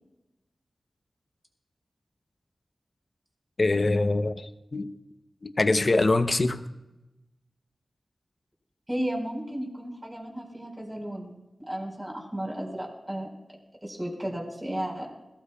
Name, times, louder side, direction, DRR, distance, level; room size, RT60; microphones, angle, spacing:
voice 1, 3.6-4.9 5.4-6.6, left 2 dB, 45° left, 9 dB, 0.8 m, -24 dB
voice 2, 8.9-11.3 11.6-13.3 13.8-15.1, right 1 dB, 15° right, 1 dB, 4.6 m, -34 dB
21.5 x 18.0 x 2.4 m, 1.0 s
wide cardioid pair, 75°, 0 cm